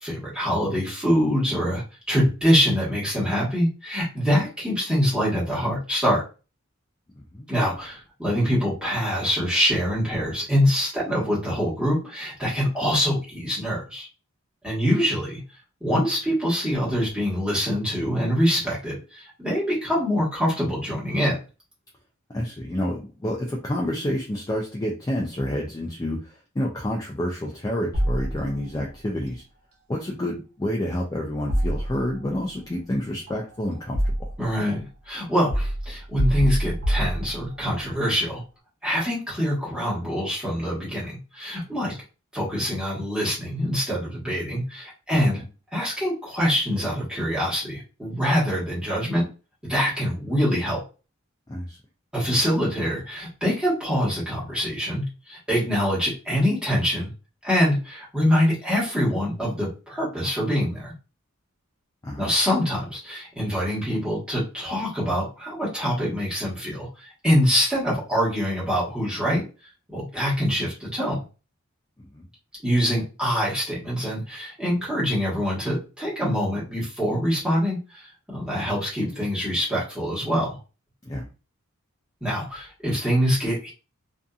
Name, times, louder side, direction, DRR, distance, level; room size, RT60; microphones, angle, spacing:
voice 1, 0.0-6.2 7.5-14.1 14.6-15.4 15.8-21.4 34.4-38.4 38.8-42.0 42.3-45.4 45.7-49.3 49.6-50.8 52.1-57.1 57.4-60.9 62.2-69.4 69.9-71.2 72.6-80.6 82.2-83.7, equal, 5° right, -8 dB, 1.3 m, -24 dB
voice 2, 7.1-7.5 22.3-29.4 29.9-34.1 45.1-45.2 51.5-51.8 62.0-62.3 72.1-72.2 81.0-81.3, left 1 dB, 15° left, -1 dB, 0.4 m, -29 dB
sound 1, 27.9-28.8 31.5-32.4 33.3-34.6 35.5-37.7, equal, 75° right, 0.8 m, -26 dB
2.6 x 2.5 x 2.3 m, 0.33 s
head